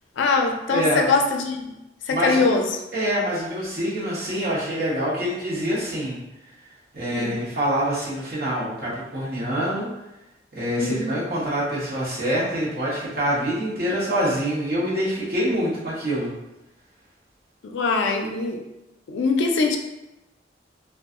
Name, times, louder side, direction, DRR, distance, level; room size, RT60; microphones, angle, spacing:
voice 1, 0.2-1.7 2.1-2.7 7.1-7.4 10.8-11.1 17.6-18.6 19.1-19.8, left 4 dB, 80° left, 4 dB, 0.4 m, -22 dB
voice 2, 0.7-1.1 2.1-2.4 2.9-6.2 6.9-9.9 10.5-16.3, equal, 50° right, -8 dB, 1.0 m, -25 dB
2.6 x 2.3 x 2.4 m, 0.93 s
head